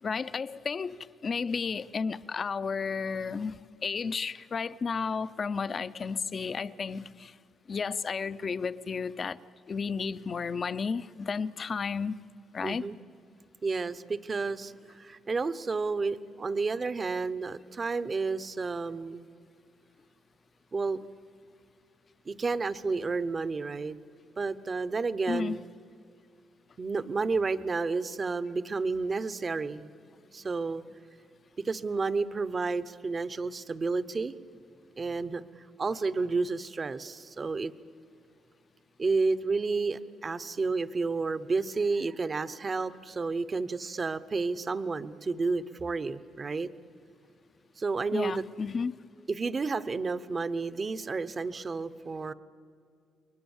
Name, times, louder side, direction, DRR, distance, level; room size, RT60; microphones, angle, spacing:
voice 1, 0.0-7.3 7.7-9.4 9.7-12.1 12.5-12.9 25.3-25.6 48.1-48.9, left 5 dB, 40° left, 0.6 m, -32 dB
voice 2, 12.6-12.9 13.6-19.3 20.7-21.0 22.3-24.0 24.4-25.6 26.8-29.9 30.3-30.8 31.6-34.3 35.0-37.7 39.0-46.7 47.8-48.4 49.3-52.3, right 4 dB, 30° right, 0.8 m, -31 dB
30.0 x 23.0 x 7.2 m
cardioid pair, 120°, 0 cm